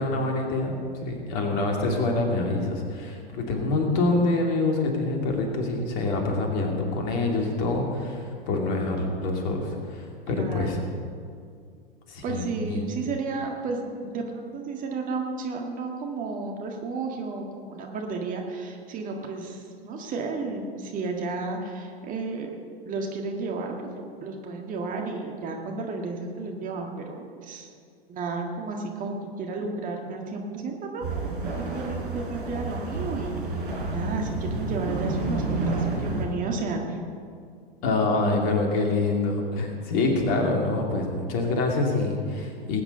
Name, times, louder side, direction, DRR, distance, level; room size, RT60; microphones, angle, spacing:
voice 1, 0.0-10.8 12.1-12.8 37.8-42.8, left 2 dB, 40° left, 1 dB, 2.7 m, -26 dB
voice 2, 10.3-10.8 12.2-22.5 22.8-27.7 28.1-31.1 31.6-37.0, right 3 dB, 25° right, 1 dB, 1.8 m, -32 dB
sound 1, 31.0-36.3, right 3 dB, 55° right, 4.3 m, -29 dB
19.5 x 9.3 x 5.4 m, 2.2 s
figure-of-eight pair, 95°, 30 cm